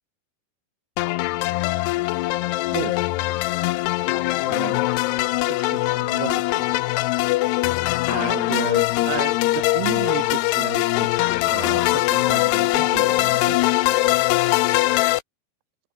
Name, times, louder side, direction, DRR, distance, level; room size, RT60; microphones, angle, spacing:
sound 1, 1.0-15.2, left 19 dB, 90° left, 2.8 m, -22 dB
voice 1, 4.5-4.9 5.5-6.7 8.1-13.8, right 19 dB, 85° right, 2.6 m, -33 dB
omnidirectional pair, 4.7 m